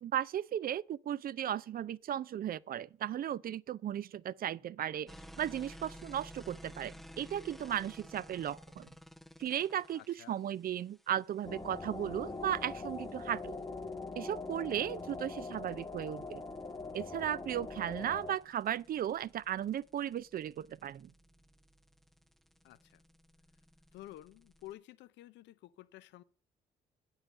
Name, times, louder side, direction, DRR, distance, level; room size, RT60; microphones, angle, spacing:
voice 1, 0.0-8.9 9.4-13.6 14.2-16.4 16.9-21.1, right 10 dB, 55° right, 0.5 m, -36 dB
sound 1, 5.1-24.7, equal, ahead, 0.6 m, -56 dB
voice 2, 9.9-10.4 22.6-23.0 23.9-26.2, left 14 dB, 75° left, 0.5 m, -52 dB
sound 2, 11.4-18.4, left 3 dB, 20° left, 1.1 m, -43 dB
8.9 x 5.6 x 8.1 m
supercardioid pair, 60°, 18 cm